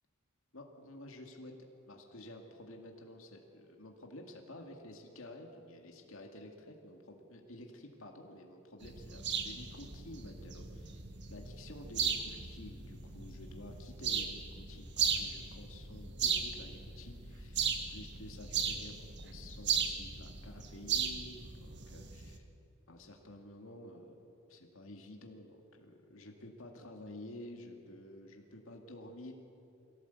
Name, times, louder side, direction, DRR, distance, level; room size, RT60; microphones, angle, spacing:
voice 1, 0.5-1.5 1.9-11.0 11.3-22.4 22.9-24.2 24.5-29.3, left 1 dB, 65° left, 3 dB, 2.2 m, -51 dB
sound 1, 8.8-22.4, right 6 dB, 55° right, 1.7 m, -37 dB
22.5 x 16.5 x 8.3 m, 2.7 s
head